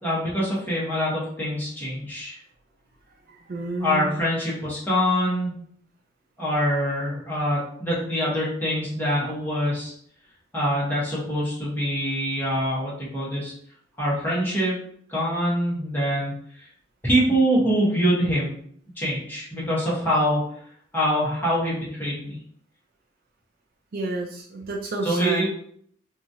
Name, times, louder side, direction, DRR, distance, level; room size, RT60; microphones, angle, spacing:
voice 1, 0.0-2.4 3.8-5.5 6.4-9.9 10.5-13.5 14.0-14.8 15.1-16.3 17.0-18.5 19.0-20.4 20.9-22.4 25.0-25.5, equal, 10° left, -7 dB, 1.1 m, -24 dB
voice 2, 3.3-4.2 23.9-25.5, right 2 dB, 50° right, 1 dB, 0.4 m, -30 dB
2.9 x 2.4 x 2.7 m, 0.62 s
head